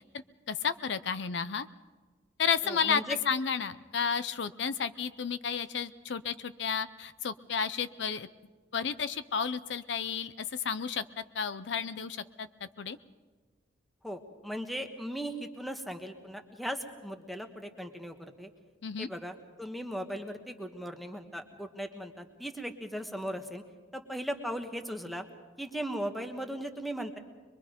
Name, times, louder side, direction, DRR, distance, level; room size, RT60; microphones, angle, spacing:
voice 1, 0.0-1.7 2.4-8.3 8.7-13.0 18.8-19.1, left 6 dB, 65° left, 14 dB, 0.5 m, -32 dB
voice 2, 2.6-3.2 14.0-18.5 19.0-23.6 23.9-25.2 25.6-27.2, equal, ahead, 6 dB, 1.3 m, -38 dB
23.0 x 23.0 x 5.2 m, 1.4 s
head